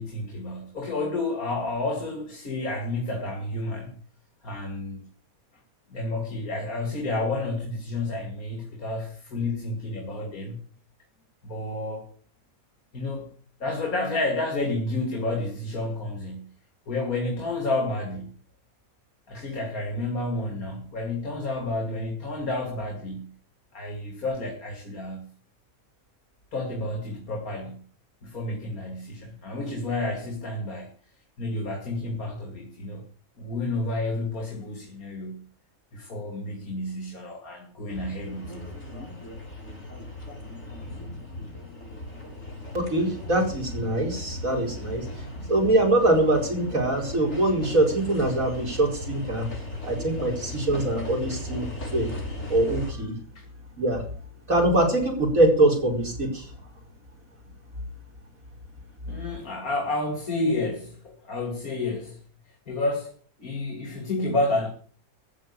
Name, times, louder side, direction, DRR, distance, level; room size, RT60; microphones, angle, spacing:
voice 1, 0.0-4.0 4.4-5.0 5.9-10.6 11.4-12.1 12.9-13.3 13.6-16.5 16.9-18.3 19.3-23.3 23.7-25.3 26.5-27.8 28.2-30.9 31.4-33.0 33.4-35.5 35.9-38.6 51.3-51.4 53.3-53.4 59.1-62.2 62.5-64.7, left 2 dB, 75° left, 2 dB, 3.1 m, -30 dB
sound 1, 37.9-52.9, left 1 dB, 50° left, 4.9 m, -37 dB
voice 2, 42.7-45.1 45.5-49.5 49.8-52.1 52.5-53.1 53.8-54.0 54.5-56.5, right 1 dB, 65° right, 1 dB, 5.3 m, -23 dB
14.5 x 7.8 x 8.6 m, 0.43 s
omnidirectional pair, 1.5 m